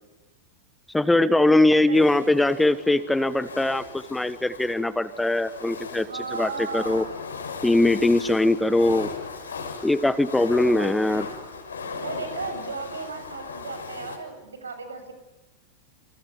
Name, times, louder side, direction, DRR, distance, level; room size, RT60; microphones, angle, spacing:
voice 1, 0.9-6.1 6.4-7.0 7.6-9.1 9.8-11.3, left 2 dB, 5° left, 16 dB, 1.1 m, -21 dB
voice 2, 1.6-2.5 6.1-7.1 10.8-10.9 12.0-15.1, right 4 dB, 70° right, 8 dB, 7.0 m, -35 dB
sound 1, 1.9-14.2, left 4 dB, 70° left, 5.8 m, -38 dB
28.0 x 28.0 x 7.0 m, 1.0 s
figure-of-eight pair, 90°, 0 cm